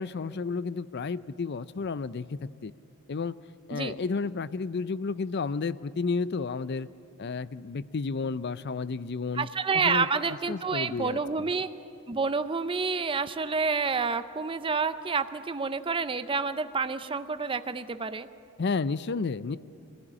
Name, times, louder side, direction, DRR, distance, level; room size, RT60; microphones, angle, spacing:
voice 1, 0.0-2.7 3.1-3.4 3.7-6.9 7.2-9.5 9.7-11.2 18.6-19.6, left 4 dB, 50° left, 17 dB, 0.5 m, -32 dB
voice 2, 9.4-11.7 12.1-18.3, right 4 dB, 25° right, 11 dB, 0.6 m, -29 dB
25.5 x 15.0 x 9.9 m, 2.6 s
head